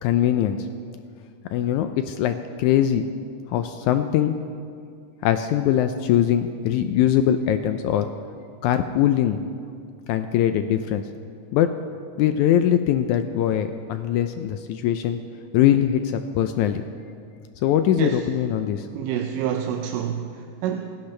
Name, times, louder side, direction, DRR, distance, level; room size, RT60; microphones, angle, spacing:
voice 1, 0.0-0.7 1.5-3.0 3.5-4.4 5.2-8.1 8.6-9.4 10.1-11.0 11.5-11.7 12.2-15.2 15.5-16.8 17.6-18.9, left 10 dB, 80° left, 8 dB, 1.8 m, -21 dB
voice 2, 18.9-21.0, right 9 dB, 85° right, 4 dB, 2.3 m, -28 dB
26.5 x 11.5 x 3.3 m, 2.4 s
omnidirectional pair, 3.8 m